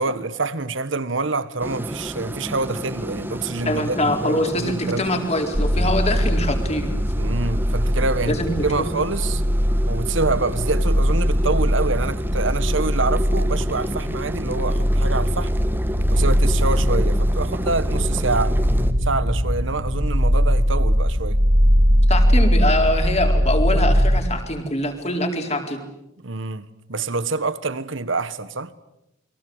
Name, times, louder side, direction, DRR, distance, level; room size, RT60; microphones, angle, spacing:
voice 1, 0.0-5.3 7.2-9.4 9.9-15.5 16.1-18.6 19.0-21.4 26.2-28.7, right 3 dB, 70° right, 1.5 m, -26 dB
sound 1, 1.6-18.9, equal, 10° right, 1.5 m, -32 dB
voice 2, 3.7-6.9 8.3-8.5 8.8-8.9 22.1-25.8, left 1 dB, 35° left, 4.4 m, -23 dB
sound 2, 5.5-24.2, equal, 35° right, 2.2 m, -20 dB
29.0 x 23.0 x 8.1 m
head